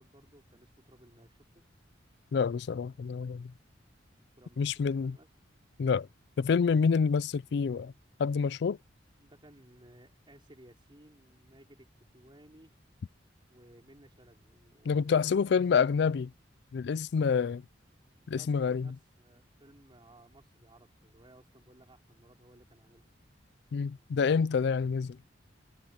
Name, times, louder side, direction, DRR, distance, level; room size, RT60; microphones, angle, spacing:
voice 1, 0.0-1.6 4.3-6.1 9.2-12.7 13.5-16.0 18.3-23.1, right 1 dB, 25° right, 4.4 m, -58 dB
voice 2, 2.3-3.5 4.6-5.1 5.8-6.1 6.4-7.9 8.2-8.8 14.8-16.3 16.7-17.6 18.3-18.9 23.7-25.2, left 5 dB, 60° left, 0.4 m, -27 dB
head